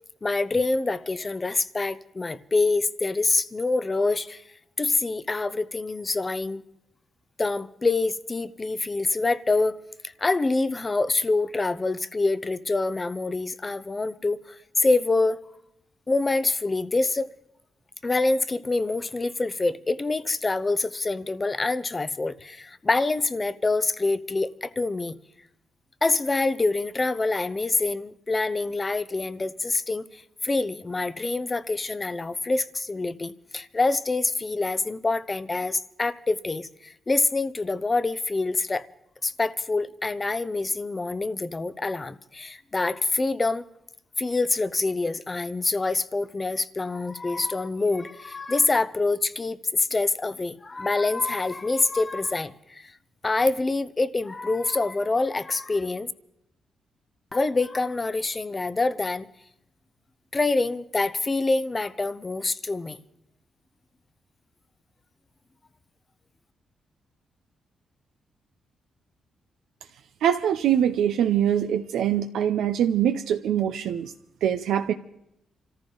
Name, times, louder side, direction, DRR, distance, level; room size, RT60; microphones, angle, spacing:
voice 1, 0.2-4.4 4.8-6.6 7.4-9.8 10.0-15.4 16.1-17.3 18.0-25.2 26.0-38.9 39.2-43.6 44.2-52.9 53.2-56.1 57.3-59.3 60.3-63.0, left 3 dB, 30° left, 0.7 m, -26 dB
voice 2, 70.2-74.1 74.4-74.9, right 10 dB, 85° right, 0.6 m, -23 dB
26.0 x 14.0 x 3.9 m
cardioid pair, 80°, 0 cm